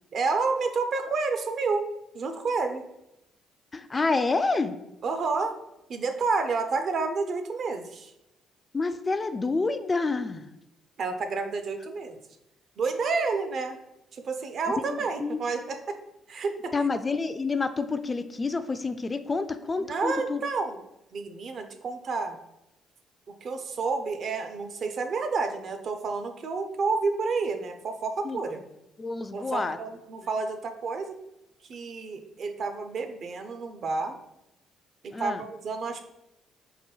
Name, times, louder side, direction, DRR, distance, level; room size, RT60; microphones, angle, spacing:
voice 1, 0.1-1.9 2.1-2.8 5.0-5.5 5.9-8.1 11.0-12.2 12.8-13.8 14.1-16.0 16.3-16.7 19.8-20.8 21.1-22.4 23.3-28.6 29.3-31.2 31.7-34.2 35.0-36.1, right 4 dB, 60° right, 7 dB, 0.5 m, -30 dB
voice 2, 3.7-4.8 8.7-10.5 14.9-15.4 16.7-20.4 28.2-28.4 29.0-29.8 35.1-35.4, left 3 dB, 30° left, 10 dB, 0.3 m, -28 dB
4.7 x 2.2 x 3.1 m, 0.88 s
supercardioid pair, 60°, 0 cm